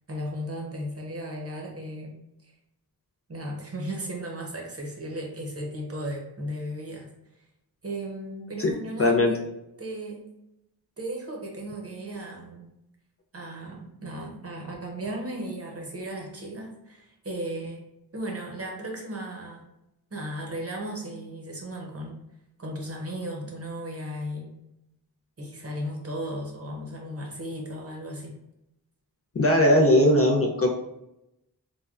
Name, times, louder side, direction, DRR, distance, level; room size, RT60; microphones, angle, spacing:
voice 1, 0.1-2.2 3.3-7.1 7.8-9.4 9.8-10.2 11.0-12.7 13.3-17.8 18.1-19.6 20.1-22.2 22.6-24.5 25.4-28.4, right 1 dB, 35° right, 0 dB, 0.7 m, -35 dB
voice 2, 9.0-9.3 29.4-30.7, left 1 dB, 40° left, 0 dB, 0.4 m, -19 dB
3.3 x 2.1 x 2.4 m, 0.87 s
wide cardioid pair, 75°, 39 cm